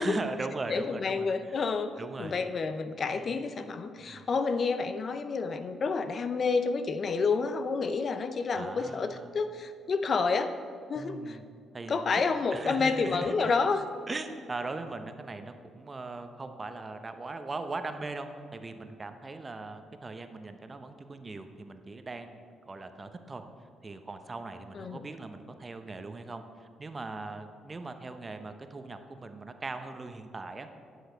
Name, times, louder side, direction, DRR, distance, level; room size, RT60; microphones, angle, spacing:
voice 1, 0.0-2.4 3.1-3.4 4.0-4.2 8.5-9.4 11.0-11.4 11.7-12.2 12.5-13.5 14.1-22.4 22.7-23.4 23.8-30.7, right 3 dB, 30° right, 8 dB, 0.8 m, -40 dB
voice 2, 0.7-10.5 10.9-11.4 11.9-13.8 24.8-25.1, left 4 dB, 50° left, 10 dB, 0.5 m, -29 dB
10.5 x 6.3 x 5.1 m, 2.3 s
supercardioid pair, 60°, 0 cm